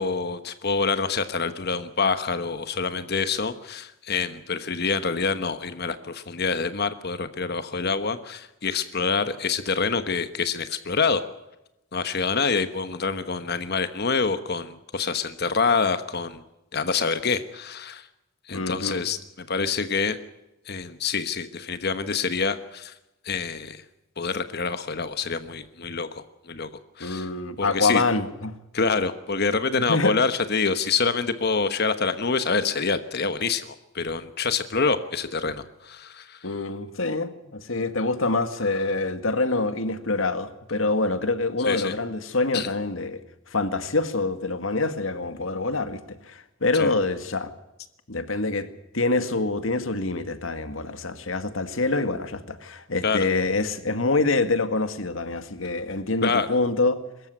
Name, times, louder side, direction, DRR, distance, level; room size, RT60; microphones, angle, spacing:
voice 1, 0.0-11.2 11.9-16.4 16.7-18.1 18.5-20.2 20.7-22.9 23.2-23.8 24.2-26.7 27.0-27.3 27.6-28.0 28.7-36.5 41.6-41.9 42.5-42.7 46.8-46.9 53.0-53.2 56.2-56.5, left 4 dB, 55° left, 1.2 m, -26 dB
voice 2, 18.5-19.0 27.0-28.5 29.9-30.2 36.4-43.2 43.5-47.5 48.1-48.7 48.9-57.0, left 3 dB, 90° left, 2.0 m, -26 dB
23.5 x 14.0 x 9.3 m
head